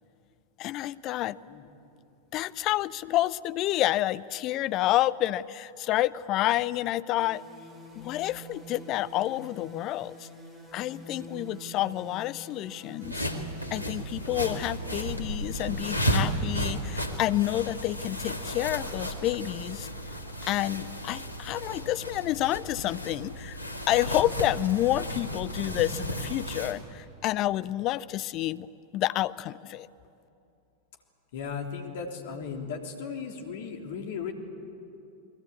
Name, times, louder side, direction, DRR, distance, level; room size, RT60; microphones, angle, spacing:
voice 1, 0.6-1.4 2.3-7.4 8.0-10.3 10.7-13.3 13.7-19.9 20.4-23.6 23.9-28.7 28.9-29.9, left 15 dB, 35° left, 17 dB, 0.6 m, -29 dB
sound 1, 7.2-17.2, right 1 dB, 5° right, 7.3 m, -46 dB
sound 2, 13.0-26.7, equal, 90° right, 2.3 m, -33 dB
voice 2, 31.3-34.3, left 6 dB, 55° left, 3 dB, 3.3 m, -36 dB
30.0 x 21.5 x 8.5 m, 2.7 s
figure-of-eight pair, 90°, 0 cm